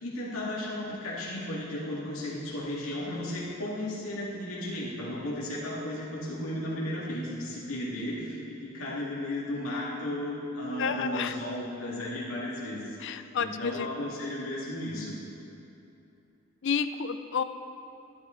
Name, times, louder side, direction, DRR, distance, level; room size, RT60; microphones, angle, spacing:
voice 1, 0.0-15.2, left 1 dB, 85° left, -5 dB, 2.3 m, -34 dB
voice 2, 10.8-11.4 13.0-13.9 16.6-17.4, left 6 dB, 60° left, 11 dB, 0.4 m, -30 dB
11.5 x 11.5 x 3.9 m, 2.8 s
head